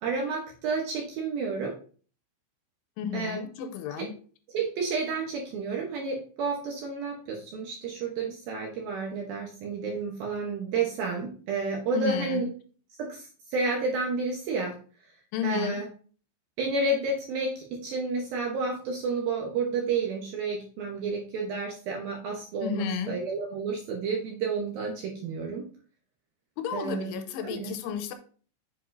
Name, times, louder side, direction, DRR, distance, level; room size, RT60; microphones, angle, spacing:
voice 1, 0.0-1.7 3.1-3.4 4.0-4.1 4.5-12.5 13.0-14.7 15.4-15.9 16.6-25.6 26.7-27.2 27.4-27.7, right 4 dB, 75° right, 0 dB, 2.2 m, -30 dB
voice 2, 3.0-4.2 11.9-12.4 15.3-15.8 22.6-23.2 26.6-28.2, left 8 dB, 85° left, 9 dB, 3.1 m, -32 dB
7.9 x 7.4 x 2.6 m, 0.42 s
omnidirectional pair, 5.6 m